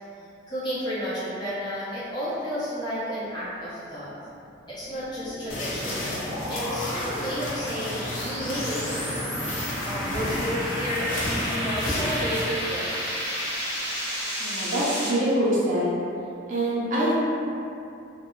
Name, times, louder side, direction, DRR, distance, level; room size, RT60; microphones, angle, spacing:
voice 1, 0.5-4.2 4.7-9.2 9.6-13.1, equal, 25° left, -12 dB, 0.7 m, -32 dB
sound 1, 4.5-15.1, equal, 15° right, 0.8 m, -32 dB
Walking in Grass, 5.5-12.4, left 1 dB, 85° left, 0.5 m, -32 dB
voice 2, 14.4-16.0 16.5-17.2, right 1 dB, 45° right, -8 dB, 0.5 m, -24 dB
2.6 x 2.1 x 2.2 m, 2.6 s
head